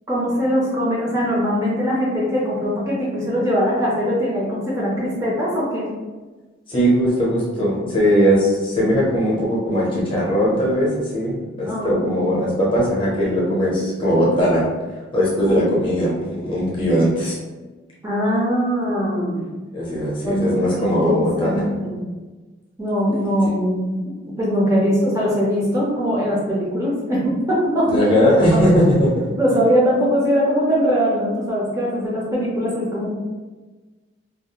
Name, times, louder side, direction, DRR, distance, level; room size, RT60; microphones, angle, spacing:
voice 1, 0.1-5.9 11.7-12.3 15.5-15.7 18.0-19.5 20.2-22.0 22.8-28.6 29.4-33.1, equal, 15° right, -6 dB, 0.5 m, -21 dB
voice 2, 6.7-14.7 15.1-17.4 19.7-21.6 27.9-29.1, equal, 25° left, -6 dB, 0.7 m, -19 dB
2.4 x 2.0 x 2.8 m, 1.3 s
head